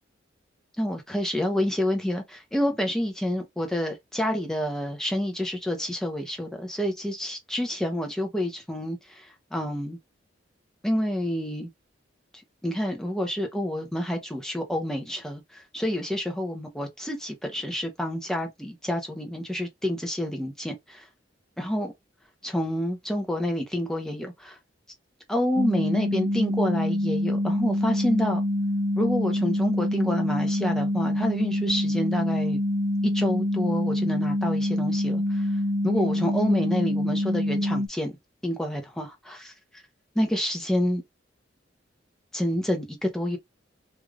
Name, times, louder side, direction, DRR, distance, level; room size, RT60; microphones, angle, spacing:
voice 1, 0.8-10.0 10.8-11.7 12.6-21.1 21.6-21.9 22.4-24.6 25.3-28.4 29.0-32.6 33.1-35.5 35.8-38.2 38.4-39.5 40.2-41.0 42.3-43.4, equal, 5° left, 0.8 m, -28 dB
sound 1, 25.6-37.9, left 1 dB, 40° right, 0.6 m, -26 dB
3.3 x 2.5 x 3.6 m
head